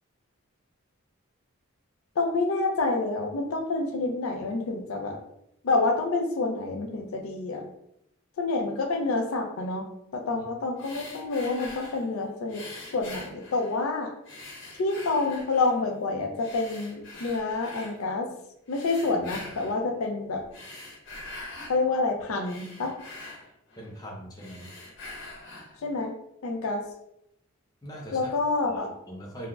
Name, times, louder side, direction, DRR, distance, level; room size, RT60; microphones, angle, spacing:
voice 1, 2.2-5.2 5.6-7.6 8.4-9.8 10.1-12.6 12.9-14.1 14.8-18.3 18.7-20.4 21.7-22.9 25.8-26.1 26.4-26.8 28.1-28.9, left 3 dB, 80° left, 4 dB, 0.4 m, -28 dB
sound 1, 10.8-12.1 12.5-13.9 14.2-15.8 16.4-18.0 18.7-19.8 20.4-21.8 22.2-24.0 24.3-25.8, left 2 dB, 60° left, 0.8 m, -44 dB
voice 2, 23.8-24.7 27.8-28.3 28.6-29.5, equal, 20° left, -2 dB, 0.5 m, -41 dB
3.2 x 2.0 x 2.4 m, 0.77 s
head